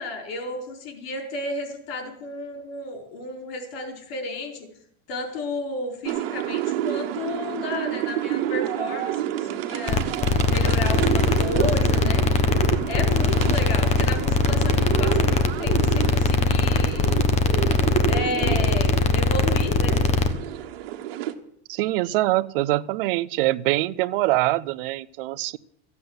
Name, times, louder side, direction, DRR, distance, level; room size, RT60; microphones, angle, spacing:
voice 1, 0.0-4.5 5.1-10.0 10.5-12.2 12.8-17.2 18.1-20.0, left 2 dB, 85° left, 3 dB, 4.4 m, -32 dB
sound 1, 6.1-21.3, right 13 dB, 85° right, 1.4 m, -29 dB
sound 2, 9.9-20.3, left 4 dB, 25° left, 1.2 m, -21 dB
voice 2, 21.7-25.6, right 18 dB, 70° right, 19 dB, 0.7 m, -24 dB
14.5 x 8.3 x 8.0 m, 0.71 s
supercardioid pair, 155°, 29 cm